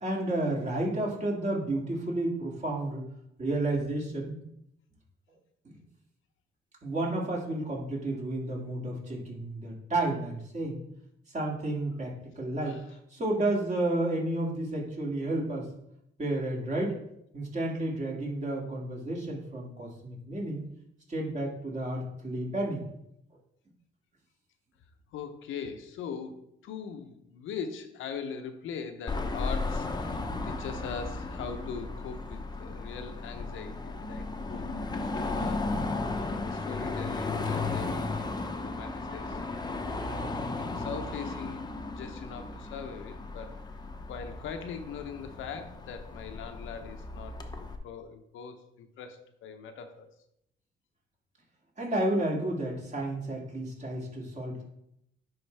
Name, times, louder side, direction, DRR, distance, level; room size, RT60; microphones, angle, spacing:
voice 1, 0.0-3.1 3.4-4.4 5.6-5.8 6.8-10.8 11.3-12.8 13.1-15.7 16.2-16.9 17.3-20.6 21.1-22.8 35.7-36.2 51.8-54.6, right 1 dB, 35° right, -2 dB, 2.3 m, -31 dB
voice 2, 25.1-35.6 36.2-39.4 40.1-41.6 41.9-43.5 44.1-47.4 47.8-50.1, left 6 dB, 80° left, 6 dB, 0.8 m, -41 dB
Car passing by / Traffic noise roadway noise / Engine, 29.1-47.8, left 3 dB, 20° left, 0.7 m, -35 dB
10.0 x 3.9 x 3.4 m, 0.77 s
cardioid pair, 90°, 20 cm